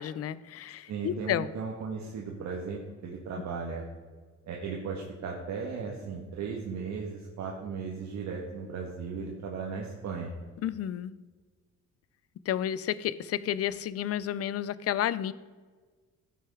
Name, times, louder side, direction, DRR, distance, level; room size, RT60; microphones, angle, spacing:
voice 1, 0.0-1.5 10.6-11.1 12.5-15.3, left 11 dB, 55° left, 17 dB, 0.5 m, -31 dB
voice 2, 0.9-3.8 4.4-10.3, right 5 dB, 65° right, -1 dB, 1.6 m, -36 dB
16.0 x 6.4 x 4.9 m, 1.5 s
cardioid pair, 150°, 29 cm